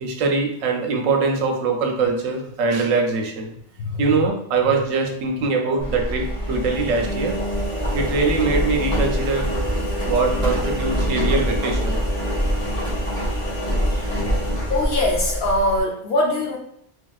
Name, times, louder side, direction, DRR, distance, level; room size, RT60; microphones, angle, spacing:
voice 1, 0.0-3.5 4.0-7.4 7.9-9.5 10.1-12.0, right 4 dB, 80° right, 3 dB, 1.0 m, -22 dB
Engine, 5.8-15.8, equal, 30° left, 0.7 m, -24 dB
voice 2, 14.7-16.6, left 1 dB, 60° left, -1 dB, 0.7 m, -22 dB
3.0 x 2.7 x 2.3 m, 0.71 s
omnidirectional pair, 1.3 m